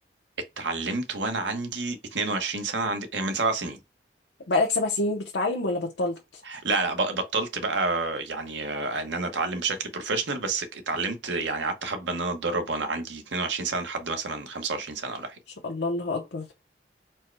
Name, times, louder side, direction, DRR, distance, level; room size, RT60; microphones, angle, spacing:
voice 1, 0.6-3.8 6.4-15.4, right 3 dB, 85° right, 1.0 m, -29 dB
voice 2, 4.5-6.2 15.6-16.5, left 2 dB, 80° left, 0.8 m, -26 dB
4.4 x 2.2 x 4.6 m
head